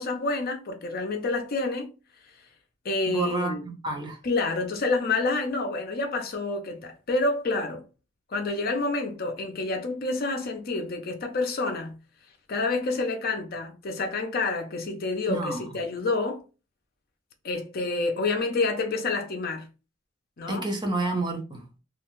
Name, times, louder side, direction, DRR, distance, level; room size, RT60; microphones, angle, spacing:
voice 1, 0.0-1.9 2.8-3.7 4.2-7.8 8.3-12.0 12.5-16.4 17.4-19.7 20.4-20.6, left 3 dB, 50° left, 0.6 m, -28 dB
voice 2, 3.1-4.2 15.3-15.6 20.5-21.6, right 2 dB, 20° right, 0.7 m, -29 dB
2.4 x 2.3 x 2.9 m
head